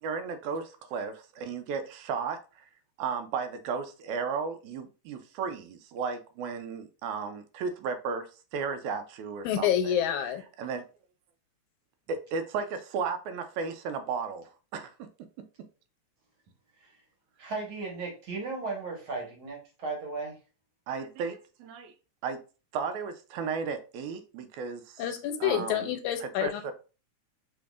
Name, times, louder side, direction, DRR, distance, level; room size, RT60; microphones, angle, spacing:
voice 1, 0.0-2.7 3.0-10.0 10.6-10.8 12.1-14.9 20.9-21.9 22.2-22.4 22.7-25.0 25.4-25.9 26.2-26.7, right 5 dB, 80° right, 1.9 m, -34 dB
voice 2, 9.4-10.4 25.0-26.7, left 10 dB, 90° left, 2.1 m, -28 dB
voice 3, 17.4-20.4, right 3 dB, 55° right, 1.7 m, -36 dB
5.2 x 3.4 x 2.4 m
omnidirectional pair, 3.4 m